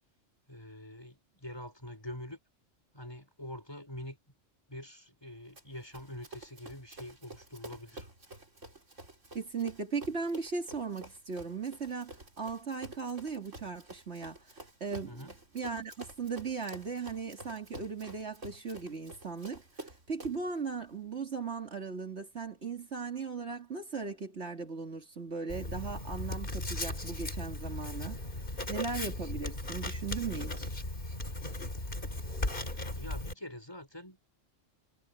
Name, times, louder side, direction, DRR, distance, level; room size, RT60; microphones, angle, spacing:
voice 1, 0.5-2.4 2.9-4.2 4.7-8.1 15.0-15.3 28.6-28.7 32.9-34.3, left 1 dB, 20° left, 5.5 m, -45 dB
Run, 5.6-20.5, right 2 dB, 75° right, 5.1 m, -50 dB
voice 2, 9.3-14.4 14.8-15.3 15.5-19.6 20.1-28.2 28.7-30.7, right 5 dB, 60° right, 2.7 m, -37 dB
Writing, 25.5-33.3, left 1 dB, 45° left, 3.8 m, -37 dB
omnidirectional pair, 1.3 m